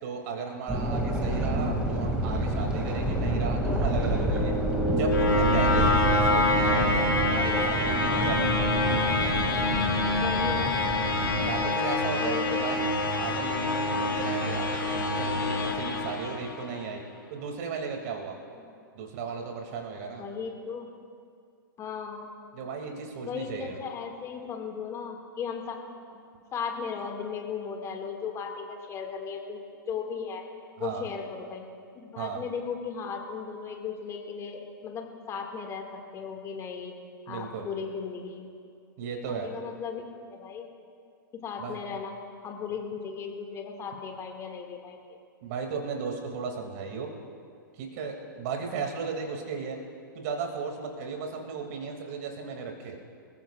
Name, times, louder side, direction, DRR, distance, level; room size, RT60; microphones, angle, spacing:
voice 1, 0.0-4.5 4.9-8.7 11.4-12.9 13.2-17.0 17.3-18.4 18.9-20.2 22.5-23.8 30.8-31.1 32.1-32.4 37.3-37.7 39.0-39.5 41.6-41.8 45.4-47.1 47.8-49.8 50.1-53.0, right 5 dB, 50° right, 2 dB, 2.6 m, -35 dB
sound 1, 0.7-11.6, right 1 dB, 10° right, 2.5 m, -29 dB
sound 2, 3.8-16.8, left 2 dB, 80° left, 2.1 m, -26 dB
voice 2, 10.1-10.8 12.2-12.7 18.5-18.9 20.2-20.9 21.8-22.3 23.2-25.8 26.1-26.2 26.5-30.4 30.8-31.6 32.0-35.9 36.1-36.9 37.3-38.4 39.0-40.0 40.3-40.7 41.3-42.1 42.4-45.2, left 6 dB, 25° left, 2 dB, 2.1 m, -36 dB
26.5 x 15.0 x 2.5 m, 2.3 s
figure-of-eight pair, 110°, 11 cm